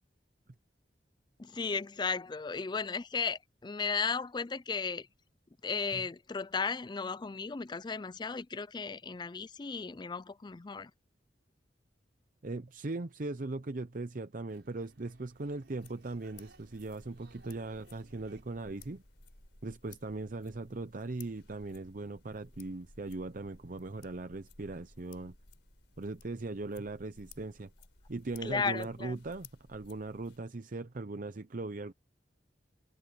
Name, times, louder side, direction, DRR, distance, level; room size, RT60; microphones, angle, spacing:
voice 1, 1.4-5.1 5.6-10.9 28.4-29.2, left 5 dB, 25° left, 0.4 m, -35 dB
voice 2, 12.4-19.0 19.6-25.3 26.0-27.7 28.1-31.9, right 2 dB, 45° right, 0.7 m, -39 dB
sound 1, 14.5-19.6, right 3 dB, 70° right, 6.3 m, -63 dB
sound 2, 15.7-30.4, left 3 dB, 75° left, 4.2 m, -58 dB
head